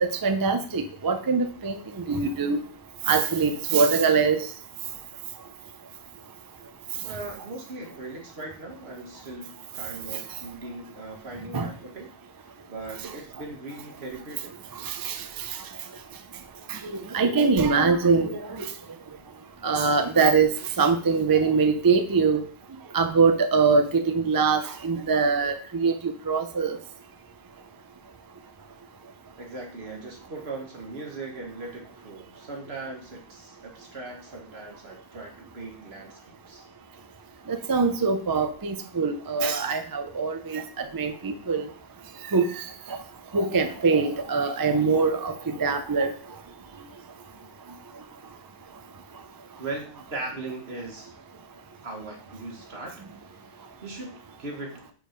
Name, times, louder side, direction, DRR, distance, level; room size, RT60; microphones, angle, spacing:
voice 1, 0.0-1.8 2.1-2.6 3.1-4.4 11.5-11.7 14.9-15.2 16.7-16.8 17.1-18.7 19.6-20.5 20.8-22.4 22.9-26.0 26.3-26.8 37.5-41.6 42.3-42.6 42.9-43.0 43.3-46.1, right 5 dB, 30° right, 7 dB, 0.4 m, -23 dB
voice 2, 7.0-12.1 12.4-14.5 29.4-36.7 49.6-51.1 51.8-52.9 53.3-54.1 54.4-54.8, right 2 dB, 65° right, 1 dB, 1.7 m, -39 dB
5.2 x 4.7 x 5.1 m, 0.43 s
omnidirectional pair, 1.1 m